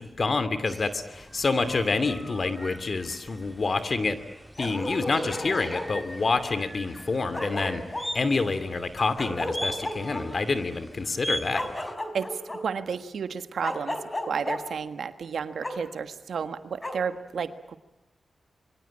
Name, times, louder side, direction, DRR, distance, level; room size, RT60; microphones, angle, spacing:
voice 1, 0.0-4.2 4.6-7.8 8.1-11.7, left 3 dB, 55° left, 12 dB, 2.7 m, -27 dB
sound 1, 0.7-11.9, equal, ahead, 2.1 m, -40 dB
Bark, 4.6-5.9 7.0-7.1 7.3-8.1 9.2-10.2 11.5-12.6 13.6-14.6 15.6-15.8 16.8-17.0, left 1 dB, 25° left, 4.3 m, -33 dB
voice 2, 12.1-17.8, right 6 dB, 85° right, 10 dB, 1.5 m, -32 dB
27.0 x 23.5 x 8.8 m, 0.93 s
cardioid pair, 55°, 0 cm